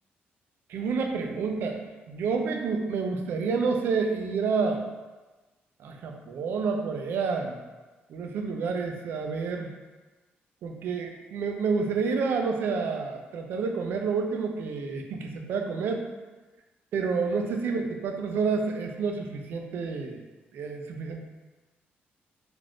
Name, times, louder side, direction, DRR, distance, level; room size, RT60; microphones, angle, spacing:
voice 1, 0.7-1.8 2.1-4.9 5.8-7.6 8.1-9.7 10.6-16.0 16.9-20.2 20.5-21.2, right 5 dB, 65° right, 3 dB, 0.3 m, -29 dB
2.4 x 2.4 x 3.3 m, 1.2 s
cardioid pair, 170°, 4 cm